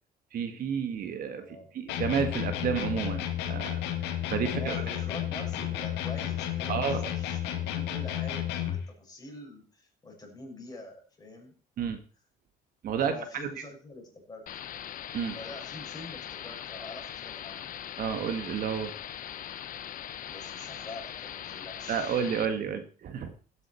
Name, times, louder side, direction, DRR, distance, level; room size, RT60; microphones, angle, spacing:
voice 1, 0.3-1.5 1.7-3.8 4.3-4.8 6.7-7.1 11.8-12.0 12.8-13.1 15.1-15.3 18.0-18.9 21.9-23.3, right 7 dB, 60° right, 8 dB, 1.7 m, -30 dB
voice 2, 1.2-1.7 4.4-11.5 13.0-14.5 15.3-17.8 20.2-22.2 22.7-22.8, left 2 dB, 25° left, 0 dB, 6.1 m, -45 dB
sound 1, 1.9-8.9, left 11 dB, 90° left, 2.0 m, -32 dB
sound 2, 14.5-22.5, left 10 dB, 55° left, 0.9 m, -41 dB
16.0 x 9.5 x 4.5 m, 0.39 s
cardioid pair, 110°, 17 cm